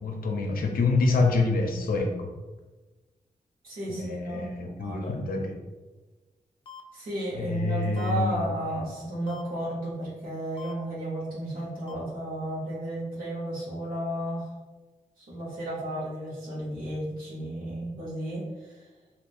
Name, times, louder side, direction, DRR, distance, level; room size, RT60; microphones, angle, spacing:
voice 1, 0.0-2.1 3.9-5.6 7.3-8.4, left 3 dB, 85° left, 3 dB, 0.5 m, -26 dB
voice 2, 3.6-5.2 6.9-14.5 15.2-18.9, right 1 dB, 85° right, -9 dB, 1.0 m, -33 dB
sound 1, 6.7-6.8 8.0-8.1 9.3-9.4 10.6-10.7 11.9-12.0, left 7 dB, 35° left, 0.4 m, -43 dB
3.5 x 2.5 x 2.5 m, 1.2 s
wide cardioid pair, 90°, 15 cm